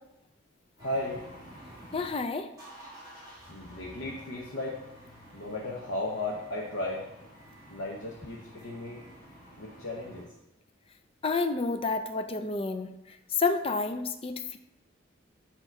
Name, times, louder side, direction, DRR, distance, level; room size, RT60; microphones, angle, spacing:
voice 1, 0.8-1.2 3.5-4.8 5.3-7.1 7.7-9.0 9.6-10.3, left 2 dB, 75° left, -3 dB, 0.9 m, -35 dB
sound 1, 0.8-2.1 2.5-10.2, equal, 20° right, 2.2 m, -50 dB
voice 2, 1.9-2.5 11.2-12.9 13.4-14.6, left 3 dB, 30° left, 8 dB, 0.4 m, -29 dB
8.0 x 2.9 x 4.5 m, 0.89 s
head